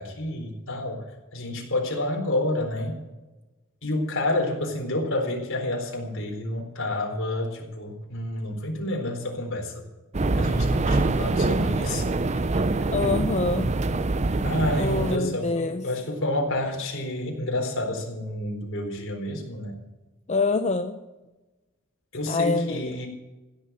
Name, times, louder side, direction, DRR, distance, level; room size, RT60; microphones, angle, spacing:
voice 1, 0.0-3.0 3.8-9.8 10.4-12.1 12.3-12.5 12.8-12.9 14.4-19.7 22.1-23.1, left 1 dB, 65° left, 1 dB, 4.1 m, -29 dB
sound 1, 10.1-15.2, right 2 dB, 30° right, 0.6 m, -24 dB
voice 2, 12.9-13.7 14.8-15.8 20.3-21.0 22.3-22.9, left 3 dB, 30° left, 6 dB, 0.7 m, -25 dB
16.0 x 7.3 x 8.5 m, 1.1 s
head